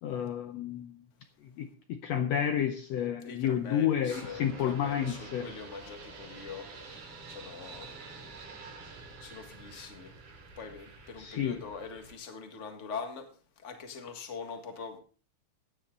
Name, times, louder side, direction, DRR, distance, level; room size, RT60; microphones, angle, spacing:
voice 1, 0.0-1.0 1.6-5.5 11.2-11.6, left 9 dB, 75° left, 8 dB, 1.7 m, -30 dB
voice 2, 3.2-7.9 9.2-10.1 10.6-13.3 13.6-15.0, left 5 dB, 30° left, 5 dB, 1.6 m, -43 dB
sound 1, 4.1-12.1, right 3 dB, 85° right, 5.7 m, -48 dB
15.5 x 9.8 x 3.9 m, 0.38 s
omnidirectional pair, 3.6 m